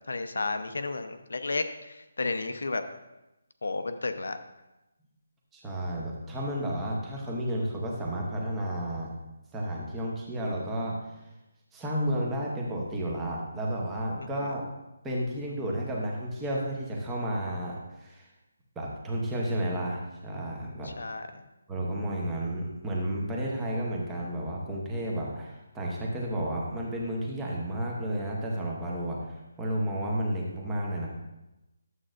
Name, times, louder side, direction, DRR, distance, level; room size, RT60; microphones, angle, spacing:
voice 1, 0.1-2.8 3.6-4.4 14.3-14.5 21.0-21.3, left 3 dB, 70° left, 8 dB, 0.7 m, -32 dB
voice 2, 5.5-9.1 9.5-11.0 11.7-14.7 15.0-18.3 18.8-20.9 21.7-31.1, right 1 dB, 5° right, -3 dB, 0.8 m, -32 dB
11.0 x 7.6 x 2.5 m, 0.97 s
hypercardioid pair, 175°, 0 cm